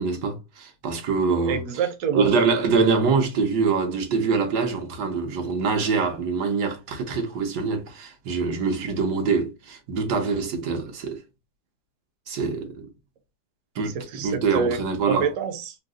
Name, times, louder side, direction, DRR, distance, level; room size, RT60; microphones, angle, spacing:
voice 1, 0.0-1.6 2.1-11.2 12.3-12.9 13.8-15.3, right 4 dB, 85° right, 1.5 m, -24 dB
voice 2, 1.5-2.3 13.8-14.8 15.1-15.8, right 7 dB, 65° right, 1.0 m, -27 dB
3.7 x 2.0 x 3.6 m
omnidirectional pair, 1.7 m